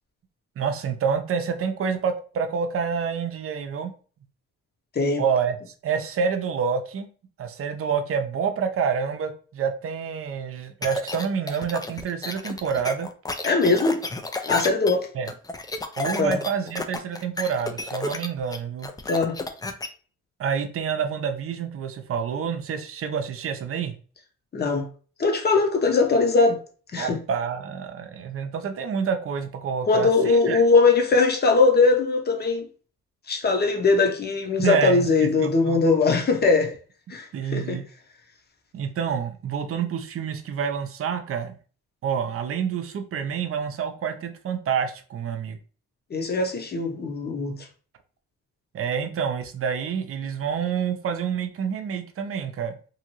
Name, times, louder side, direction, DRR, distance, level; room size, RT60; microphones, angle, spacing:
voice 1, 0.6-3.9 5.2-5.6 5.8-7.1 7.4-13.1 15.1-15.3 16.0-18.9 20.4-23.9 27.0-30.6 34.6-35.8 37.3-37.8 38.7-41.5 42.0-45.6 48.7-52.8, right 6 dB, 50° right, 0.6 m, -28 dB
sound 1, 10.8-19.9, left 2 dB, 15° left, 0.3 m, -31 dB
voice 2, 13.4-14.0 14.4-15.1 16.2-16.4 19.1-19.4 24.5-24.9 25.2-26.6 26.9-27.2 29.8-32.7 33.3-36.7 37.1-37.8 46.1-47.7, left 4 dB, 35° left, 0.8 m, -21 dB
2.8 x 2.6 x 2.9 m
cardioid pair, 90°, 30 cm